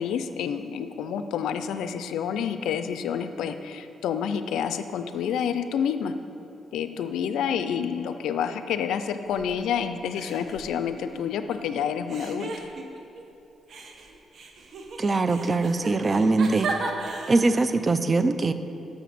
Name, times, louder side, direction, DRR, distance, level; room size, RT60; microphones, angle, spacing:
voice 1, 0.0-6.1 6.7-12.5, left 8 dB, 90° left, 10 dB, 0.4 m, -28 dB
sound 1, 9.3-9.8 10.1-11.6 12.1-13.2 13.7-17.7, right 3 dB, 60° right, 0.9 m, -36 dB
voice 2, 15.0-16.7 17.3-18.5, right 3 dB, 35° right, 11 dB, 0.4 m, -22 dB
7.1 x 6.5 x 6.0 m, 2.8 s
cardioid pair, 85°, 0 cm